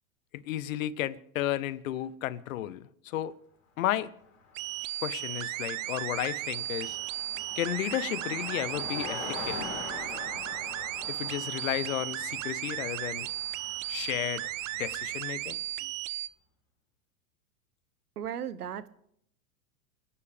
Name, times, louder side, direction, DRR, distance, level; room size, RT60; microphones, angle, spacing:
voice 1, 0.3-3.3 3.8-4.1 5.0-7.0 7.6-9.7 11.1-13.3 13.9-14.5 14.8-15.6, left 12 dB, 60° left, 1.0 m, -33 dB
Car passing by, 4.2-4.3 4.5-15.5, left 4 dB, 40° left, 4.2 m, -44 dB
sound 1, 4.6-16.3, right 15 dB, 55° right, 0.7 m, -35 dB
voice 2, 18.2-18.9, right 9 dB, 80° right, 1.0 m, -36 dB
30.0 x 10.0 x 3.4 m
hypercardioid pair, 100°, 45 cm